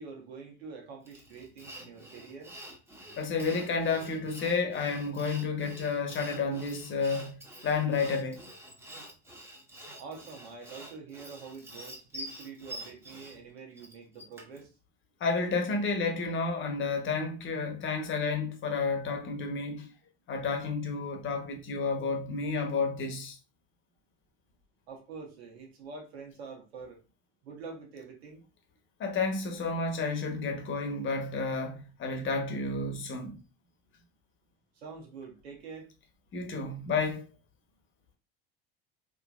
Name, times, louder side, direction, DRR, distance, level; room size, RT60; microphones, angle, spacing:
voice 1, 0.0-2.5 10.0-14.7 24.9-27.0 27.4-28.4 34.7-35.9, right 5 dB, 85° right, 1.3 m, -46 dB
Sawing, 1.1-14.7, right 1 dB, 10° right, 1.2 m, -47 dB
voice 2, 3.2-8.4 15.2-19.9 20.3-23.4 29.0-33.4 36.3-37.2, left 4 dB, 40° left, 1.0 m, -31 dB
3.7 x 2.9 x 2.4 m
hypercardioid pair, 85°, 30 cm